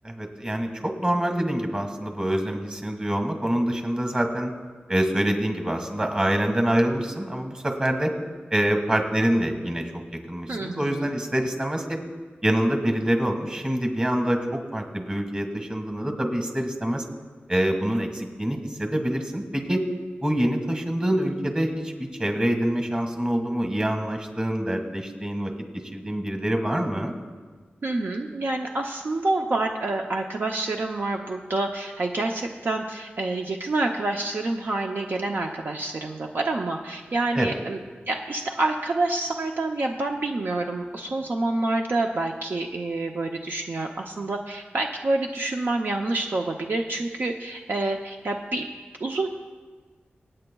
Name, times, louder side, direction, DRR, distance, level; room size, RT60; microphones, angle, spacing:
voice 1, 0.0-4.5 4.9-8.1 8.5-9.8 10.3-12.0 12.4-14.4 14.7-17.0 17.5-19.8 20.2-21.9 22.2-27.1 37.3-37.6, right 1 dB, 25° right, 5 dB, 1.7 m, -25 dB
voice 2, 10.5-11.1 27.8-37.8 38.1-48.6 49.0-49.3, right 2 dB, 60° right, 2 dB, 0.6 m, -27 dB
25.5 x 8.7 x 2.3 m, 1.5 s
wide cardioid pair, 95°, 4 cm